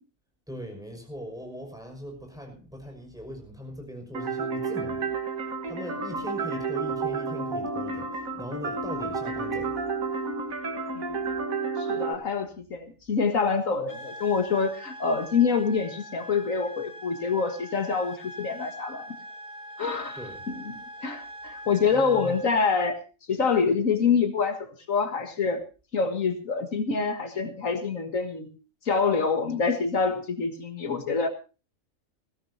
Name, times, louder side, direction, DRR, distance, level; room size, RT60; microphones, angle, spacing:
voice 1, 0.5-9.9 11.4-11.5 11.9-12.0 20.2-20.4 21.9-22.4, equal, 5° right, 3 dB, 5.9 m, -40 dB
sound 1, 4.1-12.1, right 4 dB, 85° right, 2.1 m, -31 dB
voice 2, 11.8-19.2 19.8-20.2 20.5-23.0 23.3-25.6 25.9-28.5 28.8-31.3, left 5 dB, 75° left, 7 dB, 2.0 m, -26 dB
sound 2, 13.9-22.8, equal, 30° left, 3.2 m, -43 dB
21.0 x 16.0 x 2.8 m, 0.32 s
omnidirectional pair, 1.4 m